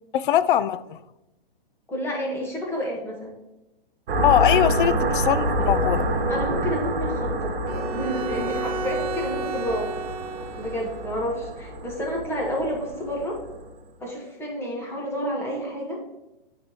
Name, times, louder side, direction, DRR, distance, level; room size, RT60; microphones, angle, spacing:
voice 1, 0.1-1.0 4.2-6.1, left 11 dB, 60° left, 15 dB, 0.4 m, -21 dB
voice 2, 1.9-3.3 6.3-9.9 10.6-13.4 14.0-16.0, equal, 10° left, -2 dB, 1.5 m, -30 dB
sound 1, 4.1-13.6, equal, 65° right, 1.3 m, -27 dB
Bowed string instrument, 7.7-11.2, right 4 dB, 40° right, 0.6 m, -33 dB
9.4 x 3.9 x 3.1 m, 0.96 s
hypercardioid pair, 145°, 30 cm